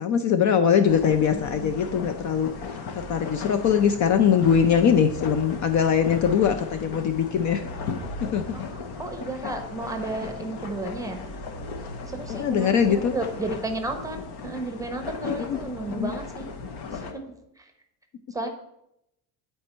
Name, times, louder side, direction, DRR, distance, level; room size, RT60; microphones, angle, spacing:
voice 1, 0.0-7.6 8.3-8.5 12.3-13.1 15.2-15.6 15.9-16.1, left 7 dB, 45° left, 9 dB, 0.5 m, -22 dB
sound 1, 0.9-17.1, left 4 dB, 60° left, 1.1 m, -36 dB
voice 2, 1.3-1.7 8.5-11.2 12.1-16.5 17.1-17.2 18.3-18.5, right 2 dB, 10° right, 5 dB, 0.8 m, -33 dB
9.3 x 4.4 x 4.4 m, 0.83 s
cardioid pair, 140°, 44 cm